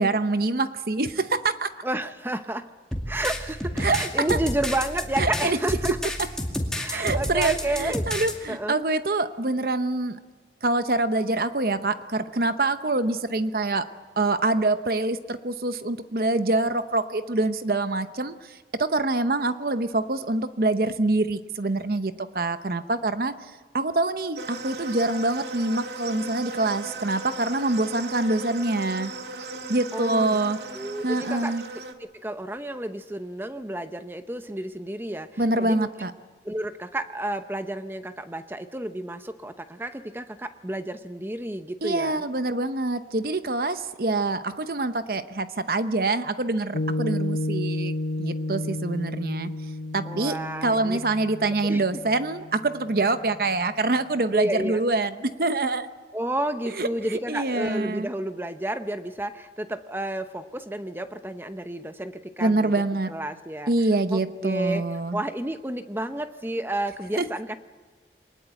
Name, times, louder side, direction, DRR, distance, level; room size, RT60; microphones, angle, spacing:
voice 1, 0.0-1.7 3.8-4.4 5.2-5.6 5.8-5.9 6.9-10.2 10.6-13.9 14.2-23.3 23.7-29.1 29.7-30.6 31.0-31.6 35.4-36.1 41.8-47.9 48.2-49.5 49.9-55.9 56.8-56.9 57.3-58.1 62.4-63.1 63.7-65.2 67.2-67.3, right 2 dB, 55° right, 10 dB, 0.9 m, -25 dB
voice 2, 1.8-2.7 3.1-6.0 6.8-8.1 8.5-8.8 29.9-30.4 30.7-31.5 32.0-35.9 36.4-42.2 50.0-51.0 51.6-51.8 54.3-54.8 56.1-62.7 63.1-63.7 64.1-64.8 65.1-67.6, right 1 dB, 10° right, 9 dB, 0.8 m, -31 dB
sound 1, 2.9-8.3, left 1 dB, 5° left, 2.4 m, -30 dB
sound 2, 24.4-31.9, right 3 dB, 75° right, 1.8 m, -37 dB
Piano, 46.7-53.4, left 2 dB, 75° left, 1.2 m, -32 dB
23.5 x 19.5 x 8.9 m, 1.4 s
head